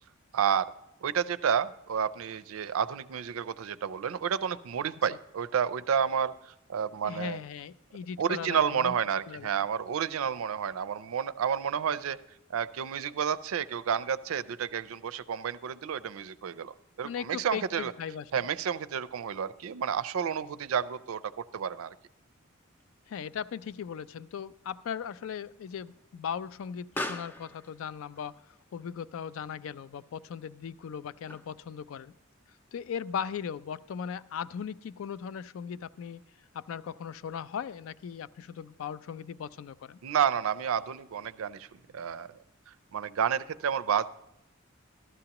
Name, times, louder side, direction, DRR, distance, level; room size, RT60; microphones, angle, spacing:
voice 1, 0.3-0.7 1.0-7.4 8.2-12.2 12.5-17.9 18.3-21.9 40.0-41.7 41.9-42.3 42.7-44.1, right 7 dB, 90° right, 17 dB, 0.4 m, -30 dB
voice 2, 7.0-8.9 9.3-9.5 17.0-18.4 23.1-28.3 28.7-32.1 32.7-36.2 36.5-40.0, left 7 dB, 75° left, 17 dB, 0.3 m, -38 dB
Explosion, 22.8-31.8, left 1 dB, 10° left, 0.5 m, -45 dB
14.0 x 12.5 x 2.9 m, 0.86 s
head